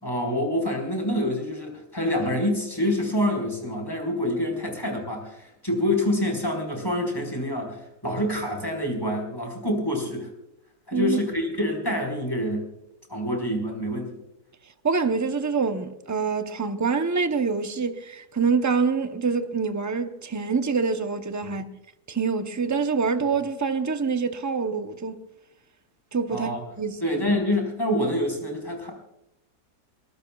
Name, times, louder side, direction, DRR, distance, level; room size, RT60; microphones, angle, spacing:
voice 1, 0.0-10.3 10.9-12.7 13.1-14.1 21.4-21.5 26.3-26.6 27.0-28.9, left 1 dB, 15° left, 4.6 m, -26 dB
voice 2, 14.8-21.7 22.1-25.1 26.1-26.5 26.8-27.0, right 5 dB, 20° right, 0.5 m, -25 dB
23.0 x 19.5 x 2.4 m
omnidirectional pair, 1.7 m